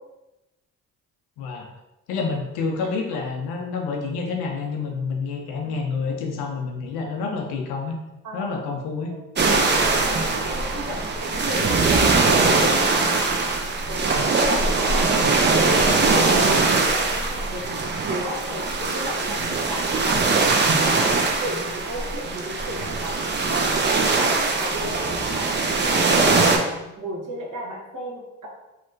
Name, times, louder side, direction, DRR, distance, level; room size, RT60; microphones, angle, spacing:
voice 1, 1.4-1.7 2.1-8.0 8.3-9.1, left 4 dB, 70° left, 2 dB, 0.6 m, -28 dB
sound 1, 9.4-26.6, right 3 dB, 25° right, 0.5 m, -21 dB
voice 2, 9.7-15.4 15.9-23.6 24.1-28.5, equal, 50° right, -3 dB, 1.1 m, -34 dB
2.8 x 2.1 x 2.6 m, 0.97 s
hypercardioid pair, 45°, 40 cm